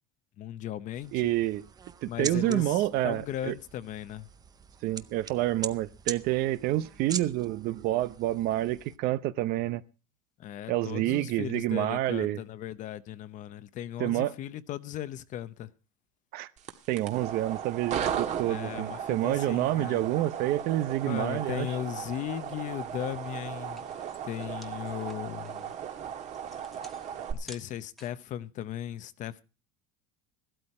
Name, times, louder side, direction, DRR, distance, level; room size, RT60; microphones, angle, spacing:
voice 1, 0.4-1.3 2.1-4.3 10.4-15.7 18.5-20.1 21.0-23.9 24.2-25.7 27.3-29.4, left 11 dB, 45° left, 0.8 m, -37 dB
sound 1, 0.9-9.0, right 6 dB, 20° right, 0.6 m, -42 dB
voice 2, 1.1-1.6 2.0-3.5 4.8-9.8 10.7-12.4 14.0-14.3 16.3-16.5 16.9-21.7, right 15 dB, 60° right, 0.8 m, -28 dB
sound 2, 16.6-27.3, right 8 dB, 40° right, 1.5 m, -36 dB
sound 3, 23.6-28.3, equal, ahead, 1.4 m, -52 dB
14.5 x 12.5 x 4.3 m
supercardioid pair, 130°, 18 cm